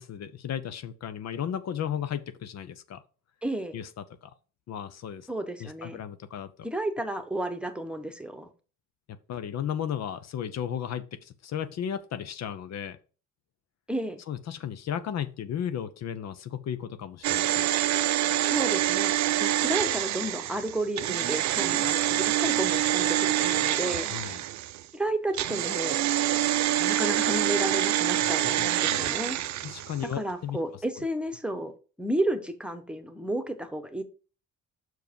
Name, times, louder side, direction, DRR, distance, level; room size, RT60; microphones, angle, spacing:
voice 1, 0.0-3.0 3.7-4.3 4.7-5.3 5.6-6.5 9.1-13.0 14.3-17.7 24.1-24.4 28.2-28.3 28.6-29.0 29.6-30.6, left 9 dB, 60° left, 12 dB, 0.7 m, -35 dB
voice 2, 3.4-3.8 5.3-6.0 6.6-8.5 13.9-14.2 18.5-19.1 19.4-24.1 24.9-26.0 26.8-29.4 30.0-31.7 32.0-34.0, right 1 dB, 5° right, 7 dB, 1.1 m, -32 dB
sound 1, 17.2-24.8 25.3-30.0 30.3-30.4, right 13 dB, 65° right, 0.5 m, -26 dB
6.1 x 4.6 x 5.2 m, 0.36 s
cardioid pair, 90°, 30 cm